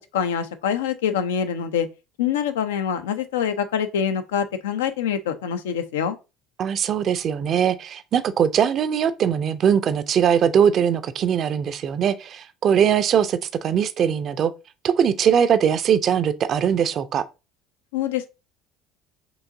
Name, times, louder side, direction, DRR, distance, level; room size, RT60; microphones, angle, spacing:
voice 1, 0.1-1.9 2.2-6.2 17.9-18.3, left 8 dB, 80° left, 0.5 m, -25 dB
voice 2, 6.6-14.5 14.8-17.2, right 8 dB, 45° right, 0.4 m, -21 dB
4.6 x 3.1 x 2.6 m
hypercardioid pair, 65°, 0 cm